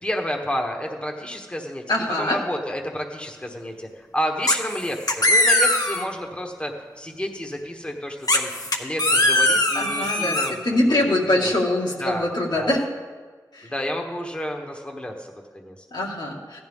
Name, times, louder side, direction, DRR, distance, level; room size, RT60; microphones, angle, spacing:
voice 1, 0.0-8.5 8.8-10.6 10.9-11.5 12.0-12.3 12.5-12.8 13.6-15.8, equal, 15° left, 2 dB, 1.2 m, -30 dB
voice 2, 1.9-2.4 9.7-12.8 13.5-13.7 15.9-16.6, left 1 dB, 75° left, -3 dB, 2.1 m, -23 dB
sound 1, 4.5-4.8 5.1-6.1 8.3-10.5, left 1 dB, 60° left, 1.2 m, -20 dB
15.5 x 11.0 x 3.6 m, 1.5 s
wide cardioid pair, 65°, 7 cm